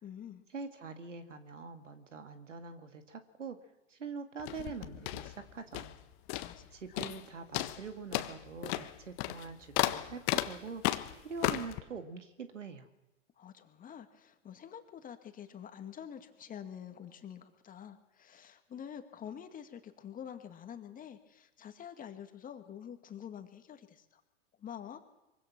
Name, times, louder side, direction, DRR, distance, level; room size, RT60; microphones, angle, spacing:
voice 1, 0.0-0.4 6.4-7.0 13.4-24.2 24.6-25.0, left 9 dB, 20° left, 7 dB, 2.2 m, -47 dB
voice 2, 0.5-3.6 3.9-6.0 6.7-10.8 11.2-12.9, right 5 dB, 80° right, 8 dB, 2.4 m, -44 dB
sound 1, 4.4-6.0 6.3-6.7 7.0-7.3 7.5-11.8, left 16 dB, 40° left, 1.4 m, -34 dB
23.5 x 23.5 x 6.2 m, 1.0 s
figure-of-eight pair, 105°, 36 cm